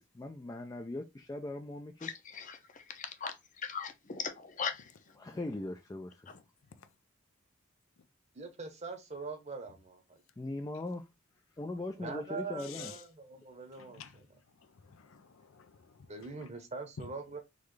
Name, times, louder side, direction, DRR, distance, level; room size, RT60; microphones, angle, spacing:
voice 1, 0.0-2.1 5.2-6.3 10.4-11.0 11.6-12.9, left 2 dB, 15° left, 0.3 m, -40 dB
voice 2, 2.0-4.9, left 6 dB, 40° left, 0.7 m, -39 dB
voice 3, 8.3-10.2 12.0-14.3 16.1-17.4, right 4 dB, 35° right, 0.9 m, -43 dB
voice 4, 12.6-13.0 13.8-14.2 14.8-16.1, left 10 dB, 80° left, 0.5 m, -51 dB
3.9 x 3.1 x 3.2 m
head